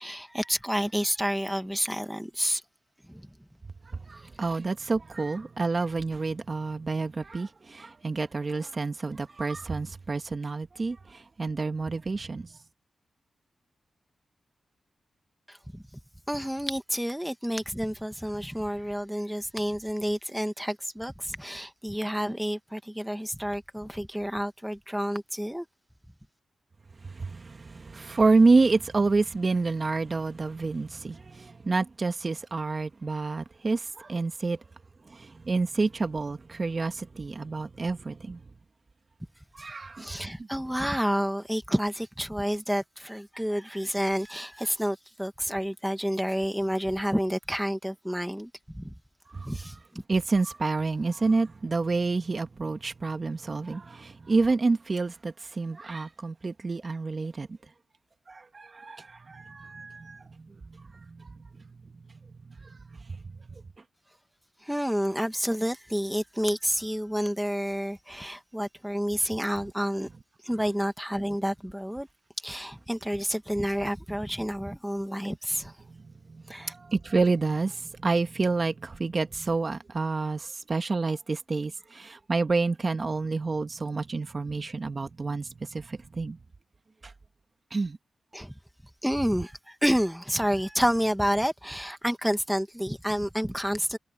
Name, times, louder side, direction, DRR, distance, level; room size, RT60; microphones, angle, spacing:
voice 1, 0.0-2.6 3.1-3.3 15.5-15.8 16.3-25.7 40.0-48.9 49.5-50.0 64.6-70.1 70.4-72.1 72.4-75.8 76.5-76.7 88.3-88.5 89.0-94.0, equal, 5° right, 1.9 m, -29 dB
voice 2, 3.9-12.5 27.0-34.6 35.1-38.4 39.5-40.2 49.3-49.5 50.1-57.5 58.3-61.4 62.6-62.8 63.1-63.2 75.9-86.4 87.0-87.1 87.7-88.0, right 3 dB, 40° right, 1.9 m, -28 dB
cardioid pair, 80°, 0 cm